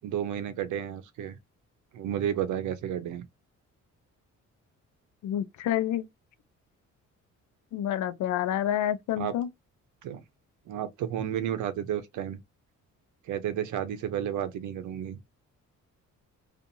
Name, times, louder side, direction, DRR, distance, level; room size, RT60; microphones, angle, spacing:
voice 1, 0.0-1.4 1.9-3.2 9.2-9.3 10.0-10.2 10.7-12.4 13.3-15.2, right 10 dB, 80° right, 0.7 m, -32 dB
voice 2, 5.2-6.1 7.7-9.5, left 11 dB, 75° left, 0.6 m, -28 dB
2.6 x 2.4 x 2.7 m
cardioid pair, 90°, 30 cm